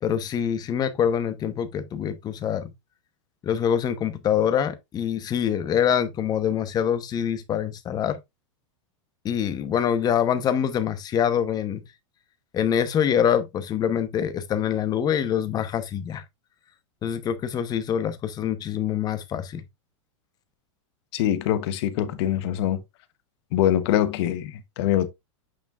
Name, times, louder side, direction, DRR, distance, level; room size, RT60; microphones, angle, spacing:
voice 1, 0.0-2.7 3.4-8.2 9.2-11.8 12.5-16.2 17.0-19.6, left 9 dB, 25° left, 1.0 m, -25 dB
voice 2, 21.1-22.8 23.5-25.1, left 11 dB, 55° left, 1.1 m, -24 dB
8.7 x 4.5 x 2.5 m
supercardioid pair, 135°, 16 cm